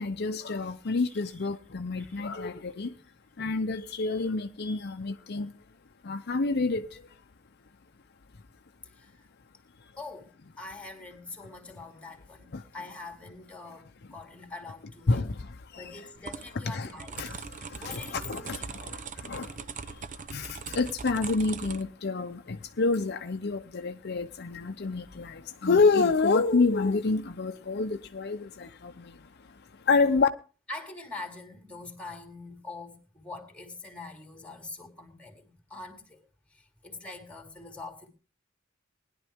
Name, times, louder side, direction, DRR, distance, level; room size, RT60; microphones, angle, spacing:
voice 1, 0.0-2.9 3.4-5.5 6.0-7.0 12.5-12.6 15.1-15.8 16.6-16.9 17.2-30.3, left 3 dB, 55° left, 0.7 m, -28 dB
voice 2, 0.9-1.5 2.0-2.2 8.8-9.2 10.0-15.3 15.7-17.4 17.8-18.9 30.7-36.2 36.5-38.1, left 3 dB, 5° left, 2.6 m, -44 dB
sound 1, 16.2-21.8, right 5 dB, 40° right, 0.7 m, -40 dB
20.0 x 11.0 x 3.5 m
head